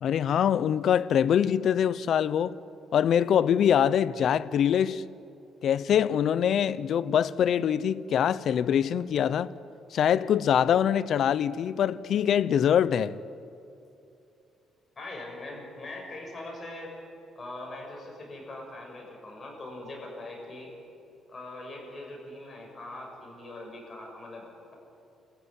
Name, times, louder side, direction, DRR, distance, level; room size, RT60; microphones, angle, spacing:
voice 1, 0.0-2.6 2.9-5.0 5.6-9.5 9.9-13.2, left 9 dB, 55° left, 0.6 m, -24 dB
voice 2, 14.9-16.9 17.3-20.7 21.3-24.5, left 2 dB, 25° left, 6.7 m, -41 dB
28.0 x 15.0 x 9.8 m
cardioid pair, 140°, 0 cm